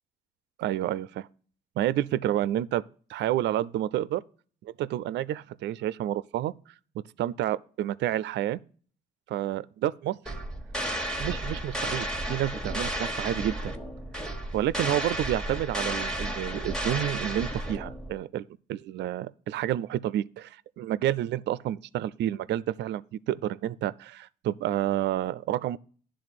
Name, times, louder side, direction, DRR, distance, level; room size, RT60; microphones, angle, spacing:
voice 1, 0.6-1.3 1.8-2.8 3.1-4.2 4.6-6.5 7.2-8.6 9.3-10.4 11.2-13.7 14.2-25.8, right 12 dB, 65° right, 0.4 m, -29 dB
sound 1, 10.2-18.1, right 1 dB, 5° left, 1.3 m, -33 dB
10.5 x 3.8 x 6.7 m
supercardioid pair, 70°, 19 cm